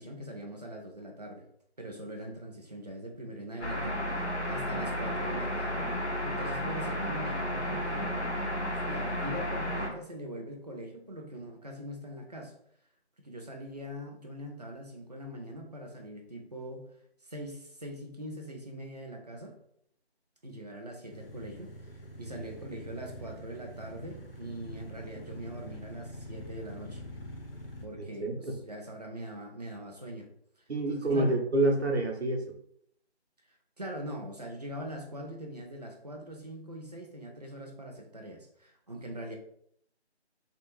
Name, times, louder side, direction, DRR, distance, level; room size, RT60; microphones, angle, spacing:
voice 1, 0.0-1.5 1.8-6.0 6.2-8.2 8.9-12.5 13.2-16.9 17.2-19.5 20.4-21.9 22.2-27.0 27.8-30.3 30.9-31.4 33.5-39.4, right 1 dB, 40° right, 1 dB, 0.5 m, -42 dB
sound 1, 3.6-9.9, equal, 90° left, 1.0 m, -32 dB
sound 2, 21.1-27.9, equal, 55° left, 0.7 m, -45 dB
voice 2, 28.0-28.6 30.7-32.6, right 2 dB, 70° right, 3 dB, 0.9 m, -28 dB
3.4 x 2.4 x 3.0 m, 0.70 s
figure-of-eight pair, 165°, 34 cm